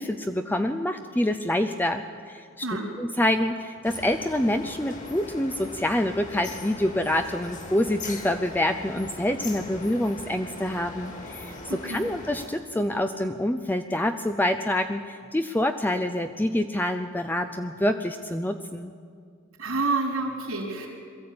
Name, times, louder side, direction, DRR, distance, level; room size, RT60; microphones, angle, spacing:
voice 1, 0.0-2.6 3.0-18.9, left 1 dB, 10° left, 6 dB, 0.5 m, -26 dB
sound 1, 3.8-12.5, left 2 dB, 35° left, 2.4 m, -40 dB
voice 2, 11.7-12.0 19.6-20.9, right 3 dB, 80° right, -2 dB, 3.6 m, -28 dB
22.5 x 14.0 x 8.6 m, 2.2 s
head